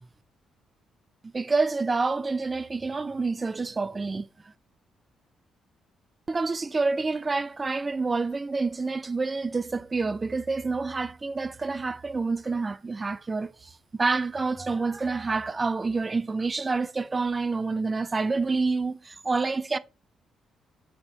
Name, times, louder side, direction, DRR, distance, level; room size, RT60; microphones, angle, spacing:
voice 1, 1.3-4.3 6.3-19.8, right 3 dB, 25° right, 0.4 m, -28 dB
5.5 x 4.2 x 6.1 m
cardioid pair, 90°, 0 cm